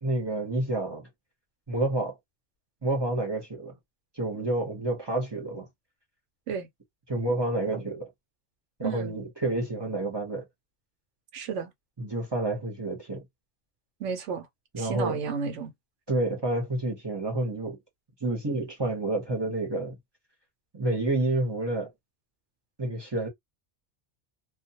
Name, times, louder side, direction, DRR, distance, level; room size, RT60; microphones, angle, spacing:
voice 1, 0.0-1.1 1.7-2.2 2.8-3.7 4.1-5.7 7.1-8.1 8.8-10.4 12.0-13.2 14.7-15.2 16.1-17.8 18.2-20.0 20.7-21.9 22.8-23.3, right 2 dB, 25° right, 0.8 m, -29 dB
voice 2, 8.8-9.2 11.3-11.7 14.0-14.5 14.8-15.7, right 6 dB, 90° right, 1.0 m, -32 dB
2.3 x 2.2 x 2.7 m
omnidirectional pair, 1.2 m